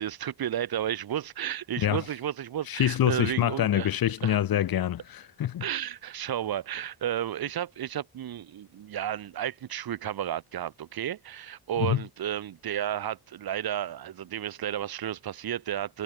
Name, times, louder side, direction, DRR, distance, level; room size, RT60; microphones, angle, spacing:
voice 1, 0.0-3.9 4.2-4.4 5.6-16.0, right 10 dB, 60° right, 1.9 m, -32 dB
voice 2, 2.7-5.6 11.8-12.0, left 11 dB, 60° left, 1.3 m, -26 dB
wide cardioid pair, 165°, 41 cm